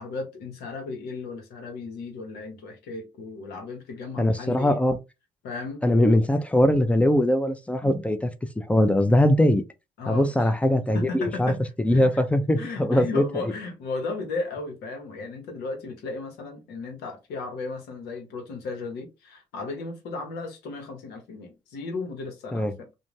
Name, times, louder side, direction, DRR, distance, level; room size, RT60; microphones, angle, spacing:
voice 1, 0.0-4.8 5.4-6.1 10.0-10.6 10.9-11.6 11.9-12.2 12.6-22.9, left 3 dB, 75° left, 0.9 m, -35 dB
voice 2, 4.2-5.0 5.8-8.3 8.6-9.6 10.1-13.4 22.5-22.8, left 1 dB, 10° left, 0.5 m, -21 dB
2.4 x 2.2 x 3.1 m
hypercardioid pair, 50°, 17 cm